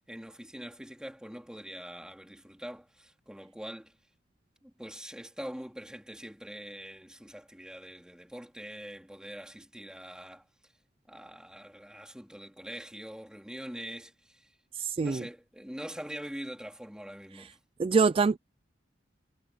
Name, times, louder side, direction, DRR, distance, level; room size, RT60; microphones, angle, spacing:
voice 1, 0.1-3.9 4.6-10.4 11.1-14.5 15.0-17.6, equal, 5° right, 3.5 m, -43 dB
voice 2, 14.7-15.2 17.4-17.5 17.8-18.4, right 4 dB, 30° right, 0.3 m, -25 dB
head